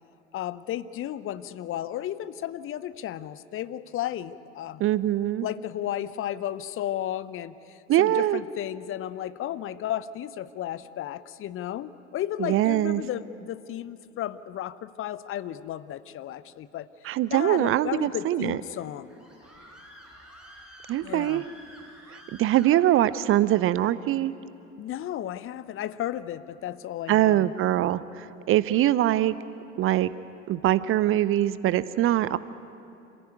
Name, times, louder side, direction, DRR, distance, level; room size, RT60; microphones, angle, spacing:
voice 1, 0.3-4.8 5.4-19.1 21.0-21.4 24.8-27.5, left 12 dB, 35° left, 16 dB, 0.7 m, -34 dB
voice 2, 4.8-5.5 7.9-8.4 12.4-13.0 17.0-18.6 20.9-21.4 22.1-24.3 27.1-29.4 29.8-30.1 30.5-32.4, right 13 dB, 35° right, 17 dB, 0.6 m, -23 dB
Screaming, 18.7-23.3, equal, ahead, 6.7 m, -50 dB
27.0 x 15.5 x 9.3 m, 2.8 s
figure-of-eight pair, 65°, 37 cm